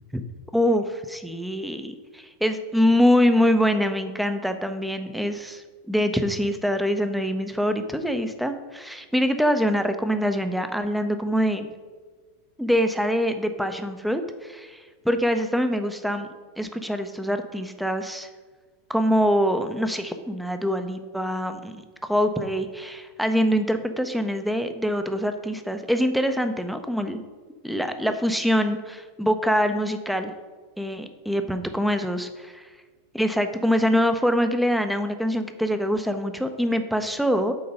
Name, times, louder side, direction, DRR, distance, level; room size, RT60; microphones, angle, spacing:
voice 1, 0.5-11.7 12.6-16.3 16.6-18.3 18.9-27.2 27.6-30.3 30.8-32.3 33.1-37.5, equal, ahead, 8 dB, 0.7 m, -24 dB
8.7 x 3.8 x 5.4 m, 1.5 s
figure-of-eight pair, 90°, 0 cm